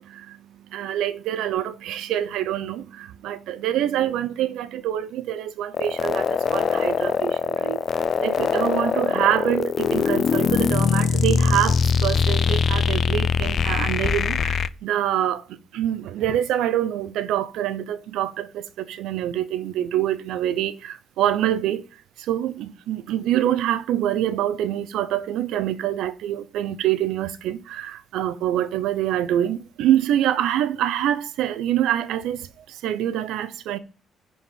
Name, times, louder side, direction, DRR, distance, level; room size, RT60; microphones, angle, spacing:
voice 1, 0.0-21.8 22.2-33.8, right 11 dB, 90° right, 0.8 m, -25 dB
sound 1, 5.7-14.7, left 6 dB, 50° left, 0.5 m, -22 dB
9.9 x 4.6 x 5.7 m
cardioid pair, 90°, 0 cm